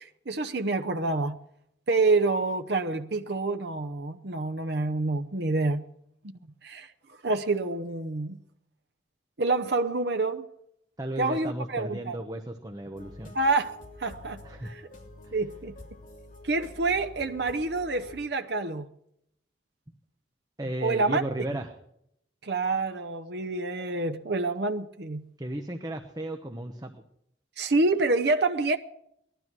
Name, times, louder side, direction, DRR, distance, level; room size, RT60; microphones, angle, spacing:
voice 1, 0.0-1.4 1.9-5.8 6.2-6.9 7.2-8.4 9.4-10.5 11.2-12.2 13.3-14.8 15.3-15.7 16.4-18.9 20.8-21.2 22.4-25.2 27.6-28.8, right 3 dB, 60° right, 0.8 m, -27 dB
voice 2, 11.0-13.3 14.4-14.7 15.2-15.3 20.6-21.7 25.4-26.9, right 1 dB, 20° right, 1.0 m, -34 dB
sound 1, 12.9-18.2, left 1 dB, 45° left, 3.2 m, -48 dB
19.0 x 12.5 x 6.1 m
head